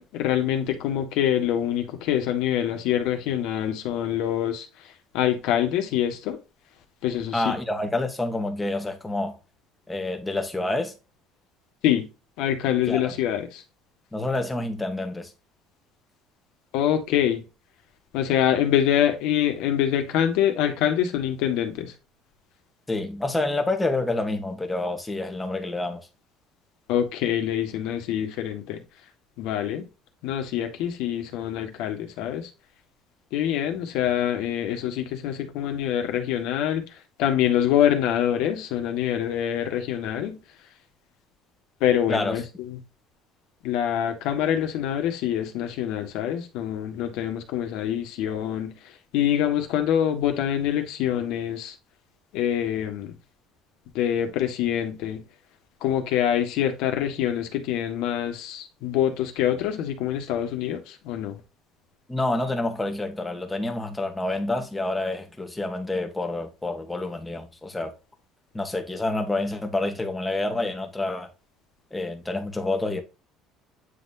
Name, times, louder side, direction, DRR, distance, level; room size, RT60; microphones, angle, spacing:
voice 1, 0.0-4.7 5.1-6.4 7.0-7.5 11.8-12.1 12.4-13.6 16.7-17.4 18.1-21.9 26.9-28.8 29.4-29.8 30.2-32.5 33.3-40.4 41.8-42.8 43.6-48.8 49.1-51.7 52.3-53.1 53.9-55.2 55.8-61.4, left 10 dB, 75° left, 1.6 m, -25 dB
voice 2, 7.3-9.4 9.9-10.9 12.9-13.1 14.1-15.3 22.9-26.0 42.1-42.4 62.1-67.9 68.5-71.3 71.9-73.0, left 2 dB, 10° left, 1.4 m, -28 dB
9.1 x 3.9 x 2.7 m
cardioid pair, 150°, 0 cm